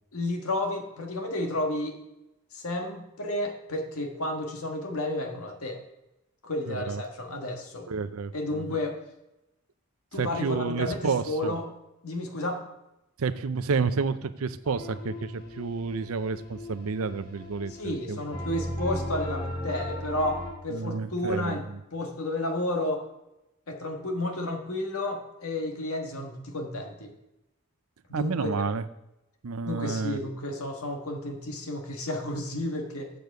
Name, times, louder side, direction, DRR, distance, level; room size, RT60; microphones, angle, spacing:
voice 1, 0.1-2.0 2.5-5.8 6.4-7.9 8.3-9.0 10.1-11.7 12.0-12.6 17.7-21.6 21.9-23.0 23.7-27.1 28.1-28.6 29.6-33.1, left 1 dB, 90° left, 3 dB, 1.5 m, -31 dB
voice 2, 6.7-7.0 7.9-8.6 10.1-11.6 13.2-18.2 20.7-21.8 28.1-28.8 29.4-30.2, right 4 dB, 80° right, 13 dB, 0.6 m, -30 dB
sound 1, 14.6-20.5, left 1 dB, 20° left, 4.2 m, -37 dB
7.8 x 6.9 x 6.6 m, 0.92 s
head